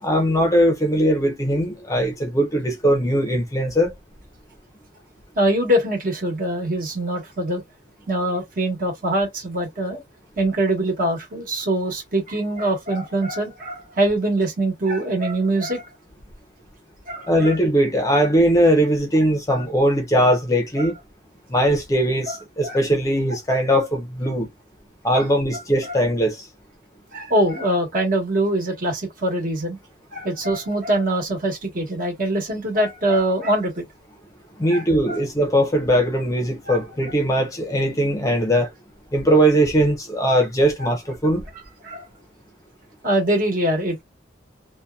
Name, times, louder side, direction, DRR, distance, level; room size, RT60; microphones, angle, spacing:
voice 1, 0.0-3.9 17.3-20.9 21.5-24.5 25.0-26.5 34.6-38.7 39.1-41.4, equal, 15° left, 0.6 m, -20 dB
voice 2, 5.3-7.6 8.1-10.0 10.4-15.9 17.1-17.6 19.5-19.6 20.8-20.9 22.3-22.4 22.6-22.8 25.1-25.2 25.8-26.0 27.1-29.8 30.1-33.8 34.7-35.2 36.7-36.8 41.8-42.0 43.0-44.0, right 1 dB, 45° right, 1.2 m, -23 dB
2.7 x 2.2 x 2.3 m
head